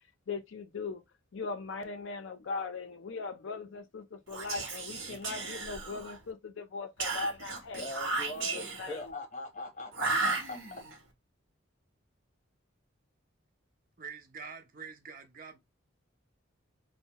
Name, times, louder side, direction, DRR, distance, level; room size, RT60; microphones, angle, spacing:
voice 1, 0.3-1.0 1.3-7.8 8.5-9.0, left 4 dB, 65° left, 0.5 m, -39 dB
Whispering, 4.3-6.2 7.0-9.0 9.9-11.0, right 3 dB, 70° right, 0.9 m, -35 dB
voice 2, 7.5-10.8, left 2 dB, 35° left, 0.8 m, -41 dB
voice 3, 14.0-15.6, right 6 dB, 45° right, 0.5 m, -45 dB
2.6 x 2.0 x 2.8 m
head